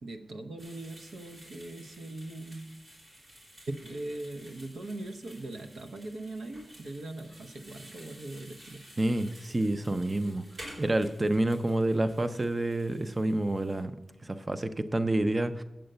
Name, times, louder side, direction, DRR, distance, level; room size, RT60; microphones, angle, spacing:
voice 1, 0.0-2.8 3.7-8.8, right 2 dB, 85° right, 5 dB, 0.9 m, -40 dB
sound 1, 0.6-13.8, equal, 60° right, 4.0 m, -52 dB
voice 2, 9.0-10.4 10.8-13.9 14.2-15.6, right 1 dB, 25° right, 10 dB, 0.4 m, -28 dB
8.9 x 7.8 x 6.7 m, 0.95 s
wide cardioid pair, 140°, 0 cm